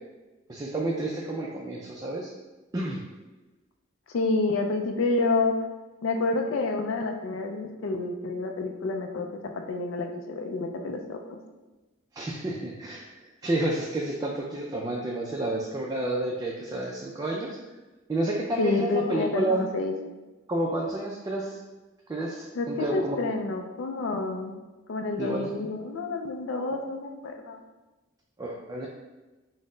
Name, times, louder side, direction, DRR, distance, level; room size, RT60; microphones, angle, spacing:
voice 1, 0.5-2.3 2.7-3.0 12.1-17.6 18.1-19.6 20.5-21.6 22.1-23.2 25.2-25.5 26.7-26.8 28.4-28.9, right 2 dB, 20° right, -2 dB, 0.3 m, -30 dB
voice 2, 4.1-5.5 6.0-11.4 18.6-19.9 22.5-24.5 24.9-27.6, left 3 dB, 70° left, 3 dB, 0.4 m, -29 dB
4.0 x 2.0 x 3.7 m, 1.1 s
head